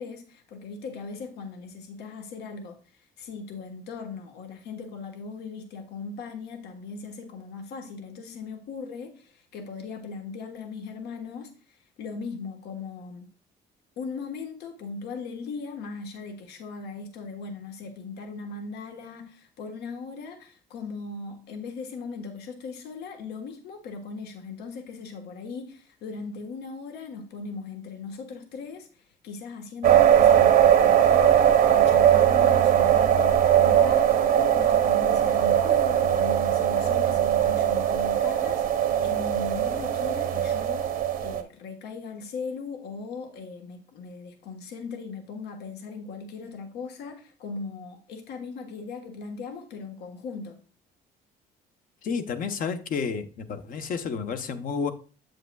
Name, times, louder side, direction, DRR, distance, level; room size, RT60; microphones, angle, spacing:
voice 1, 0.0-2.8 3.2-11.5 12.0-13.3 14.0-40.9 41.2-50.6, left 4 dB, 75° left, 1.2 m, -38 dB
sound 1, 29.8-41.4, right 10 dB, 60° right, 0.8 m, -20 dB
voice 2, 52.0-54.9, left 5 dB, 55° left, 0.8 m, -30 dB
7.7 x 7.7 x 2.3 m
cardioid pair, 110°, 17 cm